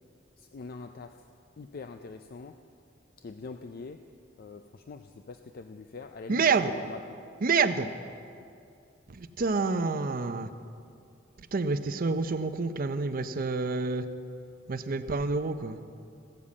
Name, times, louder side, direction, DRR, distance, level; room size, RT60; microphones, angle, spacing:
voice 1, 0.4-1.3 1.6-2.6 3.2-4.0 4.4-6.5 6.7-7.0, left 4 dB, 50° left, 7 dB, 0.4 m, -43 dB
voice 2, 6.3-6.7 7.4-7.9 9.1-10.5 11.4-14.1 14.7-15.8, right 4 dB, 50° right, 11 dB, 0.6 m, -28 dB
14.5 x 7.3 x 8.4 m, 2.5 s
head